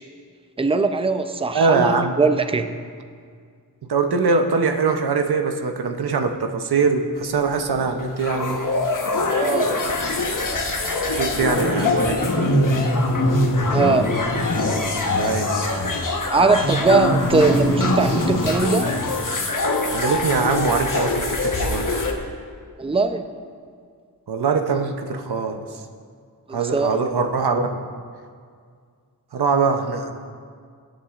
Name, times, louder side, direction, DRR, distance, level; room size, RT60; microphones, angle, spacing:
voice 1, 0.6-2.7 9.4-9.8 13.7-14.1 16.3-19.0 22.8-23.2 26.5-27.0, right 3 dB, 15° right, 8 dB, 0.5 m, -20 dB
voice 2, 1.5-2.2 3.9-8.6 11.1-12.5 15.1-15.5 19.9-21.9 24.3-25.8 26.5-27.8 29.3-30.1, right 4 dB, 85° right, 6 dB, 0.7 m, -22 dB
sound 1, 7.2-22.1, left 2 dB, 55° left, 1.2 m, -22 dB
19.0 x 7.4 x 2.5 m, 2.1 s
cardioid pair, 45°, 38 cm